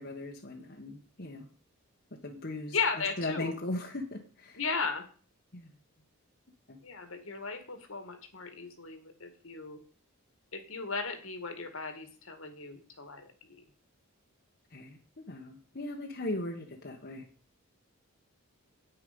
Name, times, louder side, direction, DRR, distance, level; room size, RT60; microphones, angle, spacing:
voice 1, 0.0-1.5 2.1-2.8 3.2-4.6 5.5-5.7 6.7-6.8 14.7-17.3, left 2 dB, 45° left, 1 dB, 1.3 m, -38 dB
voice 2, 2.7-3.5 4.6-5.1 6.8-9.8 10.5-13.6, left 5 dB, 65° left, 8 dB, 2.0 m, -36 dB
9.9 x 9.2 x 5.3 m, 0.43 s
head